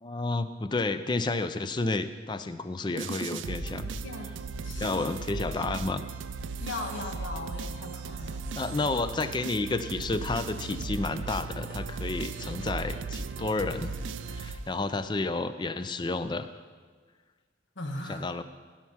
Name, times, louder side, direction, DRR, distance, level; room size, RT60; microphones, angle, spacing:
voice 1, 0.0-4.0 4.8-6.0 8.6-13.9 14.3-16.5 18.1-18.4, left 3 dB, 25° left, 12 dB, 0.4 m, -31 dB
sound 1, 3.0-15.1, right 4 dB, 85° right, 0.5 m, -37 dB
voice 2, 4.0-5.0 5.5-5.6 6.6-8.4 17.8-18.3, left 2 dB, 70° left, 4 dB, 1.3 m, -39 dB
15.5 x 5.9 x 5.7 m, 1.5 s
head